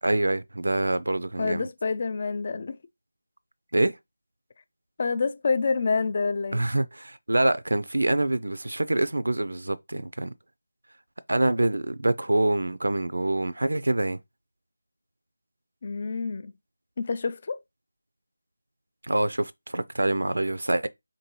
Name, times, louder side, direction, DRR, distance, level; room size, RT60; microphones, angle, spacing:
voice 1, 0.0-1.7 3.7-3.9 6.5-10.3 11.3-14.2 19.0-20.9, right 1 dB, 80° right, 0.4 m, -25 dB
voice 2, 1.4-2.8 5.0-6.6 15.8-16.5 17.0-17.6, left 4 dB, 35° left, 0.3 m, -27 dB
3.8 x 2.6 x 3.0 m
figure-of-eight pair, 170°, 0 cm